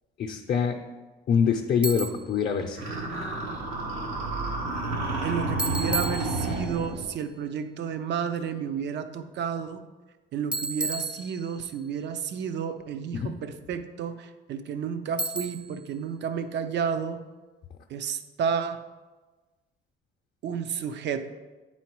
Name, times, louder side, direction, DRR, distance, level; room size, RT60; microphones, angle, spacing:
voice 1, 0.2-0.8 1.3-2.8 13.1-13.3, left 7 dB, 45° left, 2 dB, 0.6 m, -25 dB
Bicycle, 1.8-2.4 5.6-6.8 10.5-11.8 15.2-15.8, right 2 dB, 5° right, 0.4 m, -32 dB
sound 1, 2.8-7.1, right 2 dB, 90° right, 1.6 m, -30 dB
voice 2, 5.2-9.8 10.3-17.2 17.9-18.8 20.4-21.2, right 7 dB, 60° right, 10 dB, 0.6 m, -31 dB
8.5 x 4.2 x 4.6 m, 1.2 s
cardioid pair, 120°, 21 cm